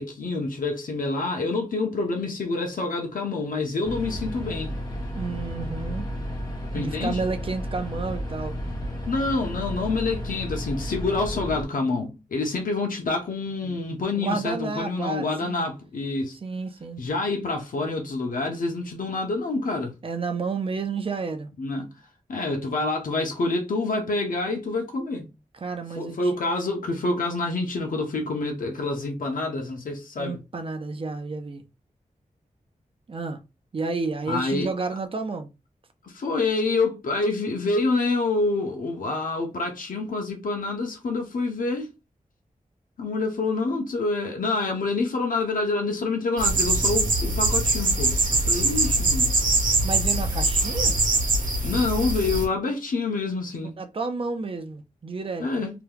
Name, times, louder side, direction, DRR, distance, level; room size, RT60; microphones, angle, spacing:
voice 1, 0.0-4.8 6.7-7.2 9.1-16.4 17.0-19.9 21.6-21.9 22.3-25.3 25.9-30.4 34.3-34.7 36.0-41.9 43.0-49.3 51.6-53.8 55.4-55.7, left 3 dB, 80° left, 0.8 m, -27 dB
sound 1, 3.8-11.6, equal, 30° left, 1.2 m, -32 dB
voice 2, 5.2-6.1 6.7-8.6 13.6-13.8 14.2-15.7 16.4-17.0 20.0-21.5 25.6-26.3 30.2-31.7 33.1-33.4 33.7-35.5 49.8-51.0 53.8-55.5, right 4 dB, 40° right, 0.5 m, -31 dB
sound 2, 46.4-52.4, right 2 dB, 70° right, 1.0 m, -23 dB
2.9 x 2.3 x 3.3 m
wide cardioid pair, 95°, 14 cm